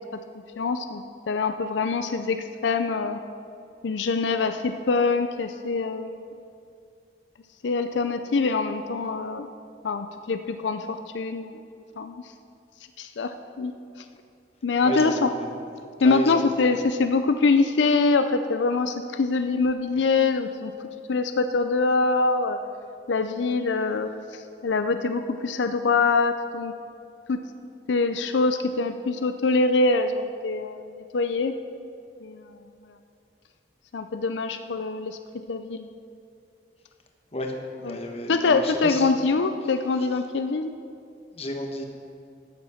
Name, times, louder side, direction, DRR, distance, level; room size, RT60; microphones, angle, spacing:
voice 1, 0.6-3.2 3.8-6.2 7.6-9.5 9.8-11.6 12.0-12.2 13.0-13.7 14.6-15.3 16.0-20.7 21.1-22.6 23.1-26.7 27.3-27.4 27.9-31.6 32.2-32.6 33.9-35.2 35.5-35.9 37.8-38.0 38.3-40.7, left 3 dB, 85° left, 8 dB, 0.5 m, -24 dB
voice 2, 14.8-15.7 16.0-16.5 37.3-37.5 37.8-39.1 41.3-41.8, left 1 dB, 35° left, 2 dB, 1.2 m, -32 dB
12.5 x 7.9 x 5.7 m, 2.5 s
head